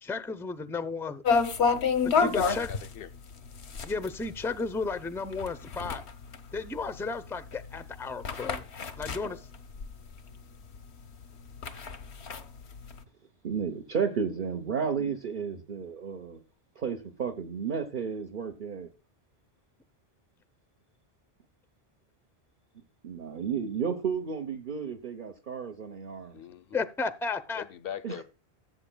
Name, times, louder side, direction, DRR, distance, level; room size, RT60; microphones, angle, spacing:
voice 1, 0.0-1.2 2.0-2.7 3.8-6.0 6.5-8.6 9.0-9.4 26.7-27.6, left 4 dB, 5° left, 0.6 m, -33 dB
sound 1, 1.2-10.4 10.7-10.8 11.2-13.0, left 5 dB, 90° left, 1.2 m, -29 dB
voice 2, 2.5-3.1 26.3-26.8 27.5-28.2, left 10 dB, 65° left, 0.9 m, -41 dB
voice 3, 13.4-16.4 16.8-18.9 23.0-26.4 28.0-28.2, right 6 dB, 50° right, 1.2 m, -32 dB
16.0 x 8.0 x 2.3 m
omnidirectional pair, 1.1 m